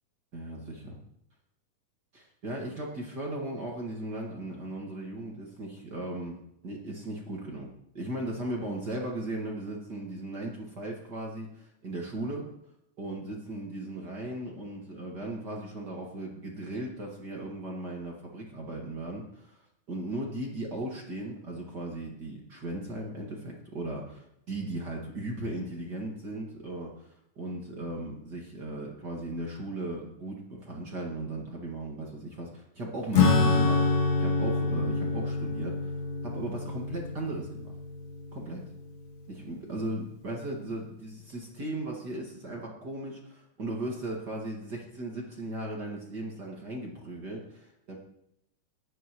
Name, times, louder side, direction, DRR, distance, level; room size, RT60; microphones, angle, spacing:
voice 1, 0.3-0.9 2.1-7.7 7.9-12.5 13.0-19.6 19.9-27.1 27.4-33.8 34.2-36.0 36.2-37.7 38.3-38.6 39.3-48.0, right 1 dB, 40° right, -2 dB, 2.1 m, -37 dB
Acoustic guitar / Strum, 33.1-39.1, left 3 dB, 65° left, 2.7 m, -27 dB
19.5 x 9.3 x 3.1 m, 0.78 s
omnidirectional pair, 3.5 m